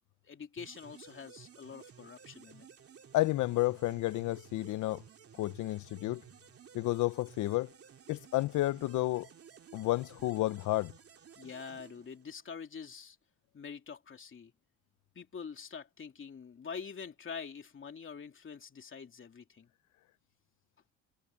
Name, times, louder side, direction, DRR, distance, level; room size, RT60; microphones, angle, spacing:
voice 1, 0.2-2.7 11.4-13.2 13.5-14.5 15.1-19.7, left 6 dB, 40° left, 3.0 m, -45 dB
sound 1, 0.6-12.6, right 7 dB, 50° right, 2.7 m, -55 dB
voice 2, 3.1-5.0 5.4-6.2 6.7-7.7 8.1-9.3 9.7-10.9, left 17 dB, 75° left, 0.6 m, -31 dB
cardioid pair, 90°, 30 cm